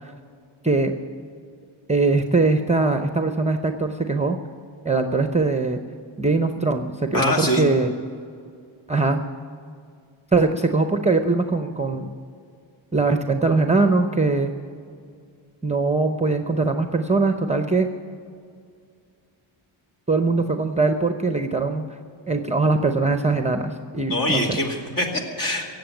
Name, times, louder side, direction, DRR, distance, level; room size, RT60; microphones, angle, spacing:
voice 1, 0.6-1.0 1.9-4.4 4.8-5.8 6.2-7.9 8.9-9.2 10.3-12.1 12.9-14.5 15.6-17.9 20.1-22.0 22.3-24.6, right 3 dB, 15° right, 6 dB, 0.7 m, -21 dB
voice 2, 7.1-7.6 24.1-25.7, left 1 dB, 40° left, 1 dB, 2.6 m, -23 dB
17.5 x 7.8 x 9.0 m, 2.2 s
wide cardioid pair, 105°, 49 cm